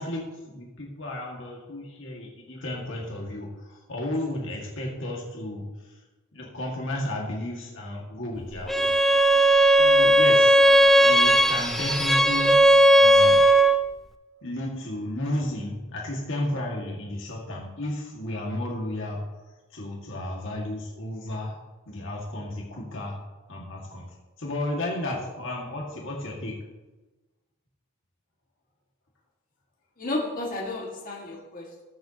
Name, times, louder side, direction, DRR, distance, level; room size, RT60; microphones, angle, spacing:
voice 1, 0.0-5.6 6.3-8.9 9.8-10.6 11.0-12.6 13.0-13.4 14.4-19.2 19.7-21.5 21.9-23.2 23.5-24.1 24.4-26.5, left 1 dB, 60° left, -2 dB, 2.0 m, -33 dB
Bowed string instrument, 8.7-13.8, right 1 dB, ahead, 0.4 m, -17 dB
voice 2, 30.0-31.8, left 2 dB, 40° left, -3 dB, 1.9 m, -32 dB
19.5 x 6.8 x 2.9 m, 1.2 s
head